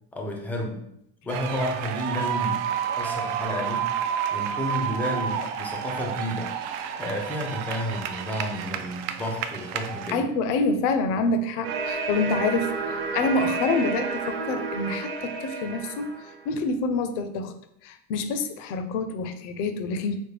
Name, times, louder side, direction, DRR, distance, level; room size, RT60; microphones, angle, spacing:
voice 1, 0.1-0.8 1.2-2.7 3.0-3.9 4.3-6.5 6.9-10.3, left 1 dB, 5° left, 1 dB, 0.4 m, -31 dB
sound 1, 1.3-10.1, right 8 dB, 65° right, 0.5 m, -30 dB
voice 2, 10.1-16.1 16.5-17.5 17.8-20.2, left 3 dB, 65° left, 9 dB, 0.6 m, -27 dB
sound 2, 11.6-16.5, right 4 dB, 50° right, 1.0 m, -31 dB
5.1 x 2.1 x 3.2 m, 0.76 s
supercardioid pair, 145°, 38 cm